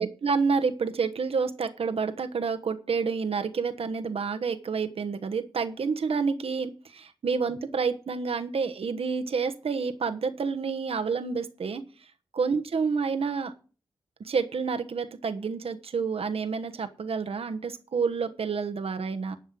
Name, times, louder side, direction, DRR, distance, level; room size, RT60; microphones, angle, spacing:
voice 1, 0.0-11.8 12.3-13.5 14.2-19.4, right 5 dB, 75° right, 8 dB, 1.2 m, -29 dB
11.5 x 5.5 x 7.6 m, 0.37 s
cardioid pair, 50°, 10 cm